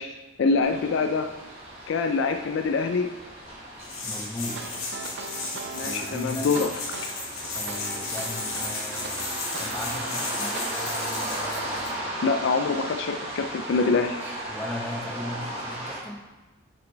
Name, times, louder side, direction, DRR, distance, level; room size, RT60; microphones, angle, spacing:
voice 1, 0.0-1.3 1.9-3.1 5.7-6.7 7.1-7.2 12.2-14.2, left 4 dB, 60° left, 8 dB, 0.3 m, -25 dB
sound 1, 0.6-16.0, right 1 dB, 25° right, 1.6 m, -36 dB
sound 2, 3.8-11.9, left 3 dB, 75° left, 1.7 m, -34 dB
voice 2, 4.0-4.6 5.8-6.5 7.5-9.3 9.6-10.6 14.5-16.3, left 1 dB, 10° left, 1 dB, 0.6 m, -37 dB
sound 3, 4.5-10.6, right 4 dB, 55° right, 0.6 m, -39 dB
6.3 x 4.8 x 4.4 m, 1.2 s
head